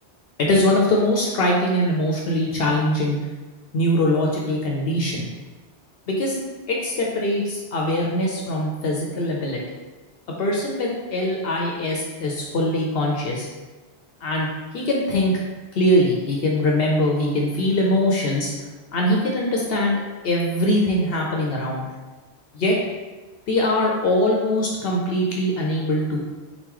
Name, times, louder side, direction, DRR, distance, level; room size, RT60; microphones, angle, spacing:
voice 1, 0.4-3.2 3.7-5.3 6.1-6.4 6.7-9.6 10.4-13.5 14.2-15.3 15.7-18.5 18.9-20.0 20.2-21.9 22.5-22.8 23.5-26.2, left 1 dB, 65° left, -1 dB, 0.8 m, -22 dB
4.0 x 3.0 x 3.7 m, 1.2 s
omnidirectional pair, 1.1 m